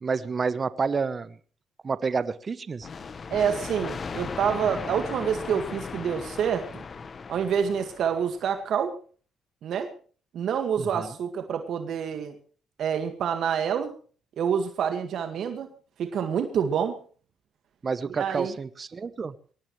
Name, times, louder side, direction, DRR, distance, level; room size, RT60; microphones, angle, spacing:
voice 1, 0.0-1.4 1.8-2.9 10.8-11.1 17.8-19.3, right 5 dB, 40° right, 15 dB, 1.0 m, -29 dB
sound 1, 2.8-8.4, left 5 dB, 40° left, 1.2 m, -37 dB
voice 2, 3.3-6.8 7.3-8.9 9.6-9.9 10.3-12.4 12.8-13.9 14.4-15.7 16.0-17.0 18.2-18.5, right 7 dB, 70° right, 7 dB, 1.9 m, -27 dB
22.5 x 18.5 x 3.2 m, 0.41 s
cardioid pair, 90°, 0 cm